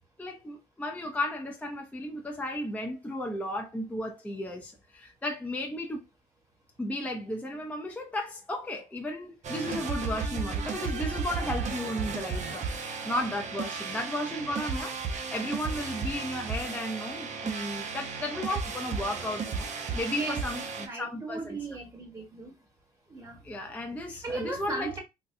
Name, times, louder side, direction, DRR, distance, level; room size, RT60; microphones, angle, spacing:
voice 1, 0.2-6.0 6.8-21.6 23.4-25.0, left 1 dB, 10° left, 0.6 m, -34 dB
sound 1, 9.4-20.9, right 5 dB, 45° right, 0.8 m, -34 dB
voice 2, 20.1-22.5 23.1-23.4 24.0-25.0, right 2 dB, 20° right, 1.4 m, -37 dB
4.0 x 2.2 x 2.6 m
cardioid pair, 110°, 17 cm